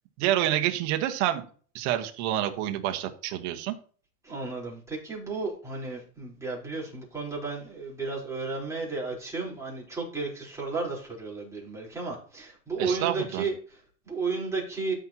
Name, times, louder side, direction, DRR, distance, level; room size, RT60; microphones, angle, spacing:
voice 1, 0.2-1.4 1.7-3.7 12.8-13.4, right 12 dB, 50° right, 7 dB, 1.5 m, -28 dB
voice 2, 4.2-14.9, right 4 dB, 5° right, -5 dB, 4.3 m, -33 dB
13.0 x 6.2 x 3.0 m, 0.43 s
supercardioid pair, 135°, 44 cm